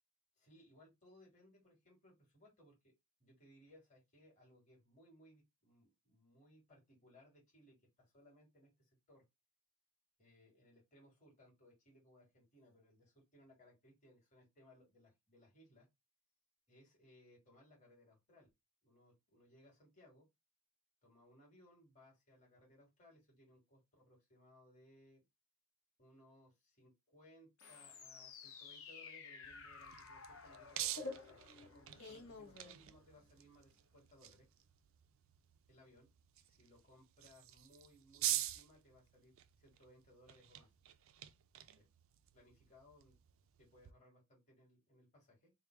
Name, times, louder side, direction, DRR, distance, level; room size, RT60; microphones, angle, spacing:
voice 1, 0.4-2.9 3.2-9.2 10.2-15.9 16.7-18.5 18.8-20.3 21.0-25.2 26.0-34.5 35.7-36.1 36.4-40.7 41.6-41.9 42.3-43.2 43.6-45.5, left 1 dB, 30° left, 1.8 m, -65 dB
sound 1, 27.6-33.3, left 4 dB, 70° left, 0.9 m, -52 dB
sound 2, 29.4-43.9, right 13 dB, 60° right, 0.4 m, -47 dB
3.5 x 2.2 x 4.4 m
head